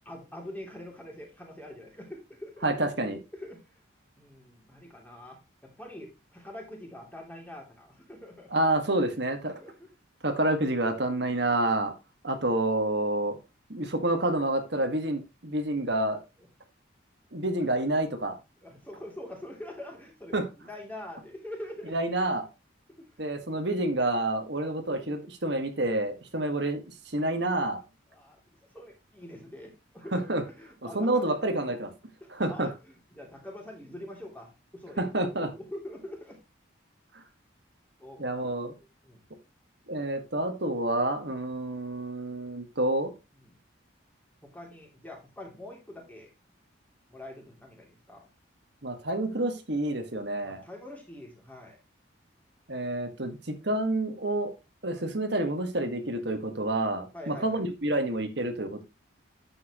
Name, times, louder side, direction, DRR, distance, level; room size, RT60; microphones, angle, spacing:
voice 1, 0.1-2.6 3.1-3.8 4.1-8.5 9.4-9.9 16.4-16.5 18.6-21.9 23.0-23.3 28.1-28.4 28.7-31.3 32.2-36.4 38.0-38.5 39.0-39.2 41.5-41.6 43.4-43.6 44.4-46.3 47.1-48.2 50.4-51.8 54.9-55.1 57.1-57.6, left 1 dB, 10° left, 3.0 m, -45 dB
voice 2, 2.6-3.2 8.5-9.5 10.2-11.9 12.2-13.4 13.7-16.2 17.3-18.4 20.3-20.4 21.9-22.5 23.2-26.8 27.0-27.8 30.1-30.4 30.9-31.9 32.3-32.7 35.0-35.5 37.1-37.2 38.2-38.7 39.9-43.1 48.8-50.6 52.7-53.4 53.6-54.5 54.8-58.8, right 1 dB, 60° right, 1.7 m, -28 dB
10.0 x 7.7 x 3.0 m
head